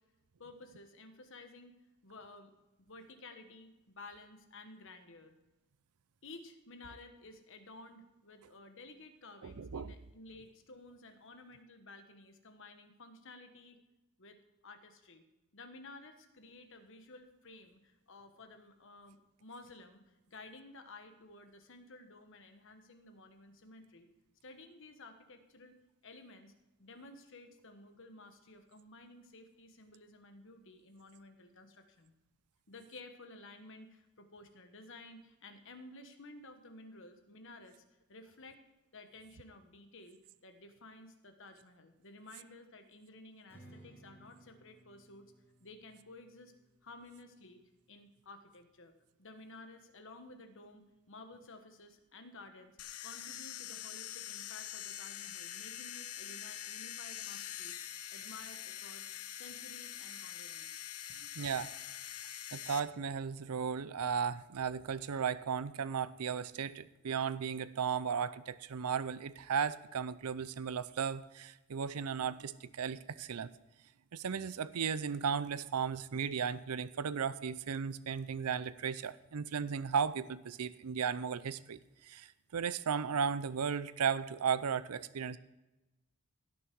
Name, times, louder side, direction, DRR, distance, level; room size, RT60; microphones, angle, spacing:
voice 1, 0.4-2.5 2.8-5.3 6.2-13.8 14.2-14.4 14.6-15.2 15.5-24.1 24.4-26.5 26.8-32.1 32.7-37.8 38.1-38.6 38.9-45.3 45.6-46.5 46.8-47.6 47.9-48.9 49.2-52.7 53.0-57.8 58.1-59.1 59.4-60.8, left 2 dB, 60° left, 7 dB, 1.3 m, -54 dB
voice 2, 9.4-9.9 61.4-61.7 62.5-73.5 74.1-85.4, right 6 dB, 85° right, 16 dB, 0.5 m, -35 dB
Strum, 43.5-48.7, right 1 dB, 10° left, 2.9 m, -62 dB
sound 1, 52.8-62.8, left 11 dB, 85° left, 0.8 m, -44 dB
16.5 x 6.7 x 4.6 m, 1.0 s
head